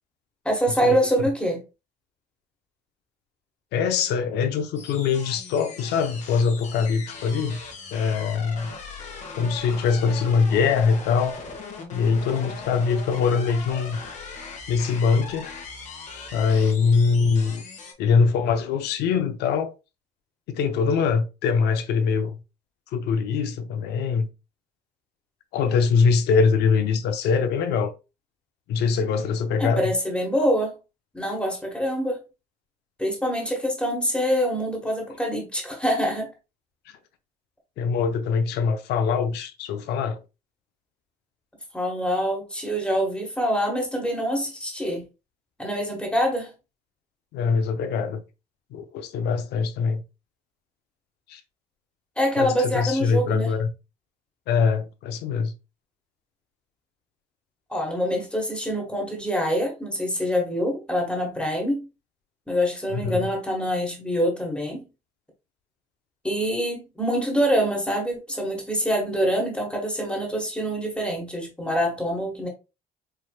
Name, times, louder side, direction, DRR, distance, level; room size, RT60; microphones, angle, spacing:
voice 1, 0.4-1.6 29.6-30.8 31.1-32.2 33.0-36.3 41.7-45.0 45.6-46.5 52.2-53.5 57.7-61.8 62.5-64.9 66.2-72.5, equal, 5° left, 1.4 m, -25 dB
voice 2, 3.7-7.6 7.9-8.7 9.4-11.4 11.9-14.0 14.7-15.5 16.3-17.6 18.0-19.7 20.5-22.4 22.9-24.3 25.5-27.9 28.7-29.9 37.8-40.2 47.3-48.2 48.7-50.0 51.3-51.4 52.4-53.7 54.5-55.5 62.9-63.3, left 5 dB, 80° left, 0.7 m, -23 dB
sound 1, 4.8-17.9, left 4 dB, 45° left, 1.2 m, -39 dB
4.7 x 3.2 x 2.3 m
cardioid pair, 110°, 17 cm